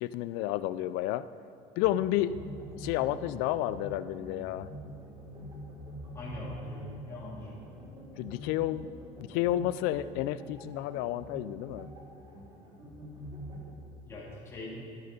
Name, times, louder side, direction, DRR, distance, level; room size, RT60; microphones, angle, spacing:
voice 1, 0.0-1.2 1.8-2.3 2.8-4.7 8.2-8.9 9.3-11.8, left 14 dB, 65° left, 15 dB, 0.4 m, -30 dB
sound 1, 1.8-13.7, equal, 25° right, 1.9 m, -45 dB
voice 2, 6.1-7.6 14.0-14.7, left 2 dB, 15° left, -7 dB, 2.7 m, -42 dB
13.0 x 8.0 x 5.3 m, 2.8 s
cardioid pair, 160°, 16 cm